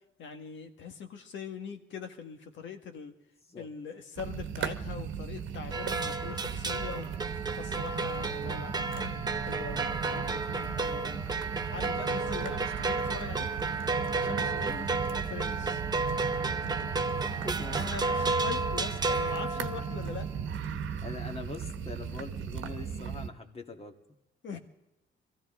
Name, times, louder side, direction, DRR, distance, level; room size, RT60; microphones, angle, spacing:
voice 1, 0.2-3.1 3.6-7.1 7.6-11.2 11.7-13.5 14.2-14.9 15.3-15.8 17.7-20.3 24.4-24.6, left 6 dB, 70° left, 6 dB, 1.7 m, -42 dB
sound 1, 4.2-23.3, right 7 dB, 75° right, 1.1 m, -37 dB
sound 2, 5.7-20.1, right 3 dB, 20° right, 0.7 m, -32 dB
voice 2, 11.8-12.2 14.4-14.6 17.1-18.1 21.0-23.9 24.5-24.6, left 3 dB, 30° left, 4 dB, 1.8 m, -44 dB
23.0 x 15.0 x 3.7 m, 0.92 s
cardioid pair, 90°, 20 cm